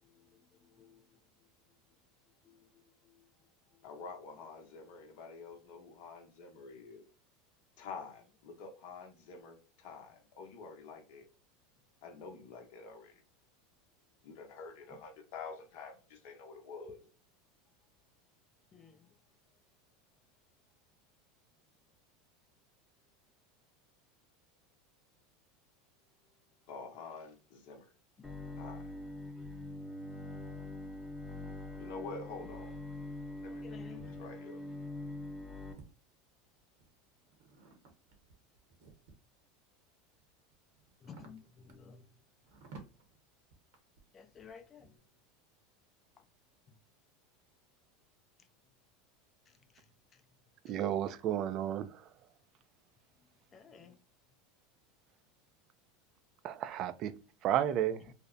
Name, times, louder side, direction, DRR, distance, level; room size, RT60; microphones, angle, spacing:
voice 1, 0.0-1.8 2.4-3.3 3.7-3.9 14.9-15.0 18.7-19.2 33.4-34.1 41.0-42.1 44.1-45.0 46.7-46.8 49.5-50.2 50.7-50.8 53.5-54.0 58.1-58.2, left 6 dB, 30° left, 0.4 m, -56 dB
voice 2, 3.8-7.0 7.8-11.3 12.0-13.1 14.2-17.0 26.7-27.9 28.5-28.8 31.8-32.8 33.4-34.6, left 4 dB, 65° left, 0.7 m, -48 dB
Bowed string instrument, 28.2-35.7, left 2 dB, 10° left, 0.8 m, -43 dB
sound 1, 35.5-35.9 36.6-39.4 40.0-45.0, right 4 dB, 70° right, 0.8 m, -57 dB
voice 3, 50.6-52.1 56.4-57.1 57.4-58.0, right 11 dB, 50° right, 0.3 m, -32 dB
2.7 x 2.0 x 2.3 m
hypercardioid pair, 100°, 0 cm